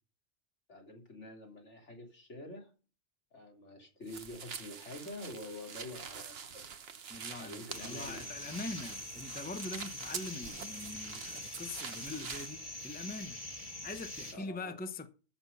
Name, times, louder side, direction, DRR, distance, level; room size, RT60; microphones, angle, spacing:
voice 1, 0.7-2.7 3.3-6.7 7.4-8.2 14.3-14.7, left 1 dB, 65° left, 3.8 m, -47 dB
sound 1, 4.1-12.5, right 6 dB, 55° right, 1.2 m, -46 dB
voice 2, 7.1-13.4 13.8-15.1, left 2 dB, 10° left, 0.9 m, -43 dB
sound 2, 7.7-14.3, left 1 dB, 30° left, 1.9 m, -44 dB
14.5 x 6.7 x 5.6 m
omnidirectional pair, 1.3 m